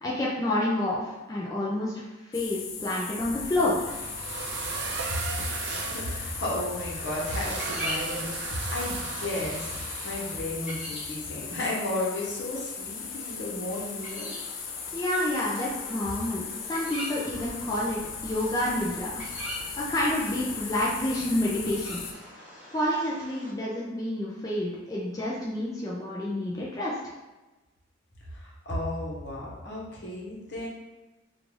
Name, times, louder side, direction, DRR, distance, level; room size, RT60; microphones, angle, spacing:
voice 1, 0.0-3.9 14.9-19.2 19.9-22.0 22.7-27.0, left 1 dB, 20° left, -6 dB, 0.4 m, -29 dB
sound 1, 2.3-22.1, left 6 dB, 85° left, 0.4 m, -38 dB
sound 2, 3.5-10.4, right 4 dB, 65° right, 0.4 m, -36 dB
voice 2, 5.8-9.7 10.0-14.3 28.3-30.7, left 1 dB, 65° left, -5 dB, 1.0 m, -33 dB
sound 3, 6.2-23.5, equal, 5° right, 0.9 m, -43 dB
3.7 x 2.4 x 3.2 m, 1.1 s
head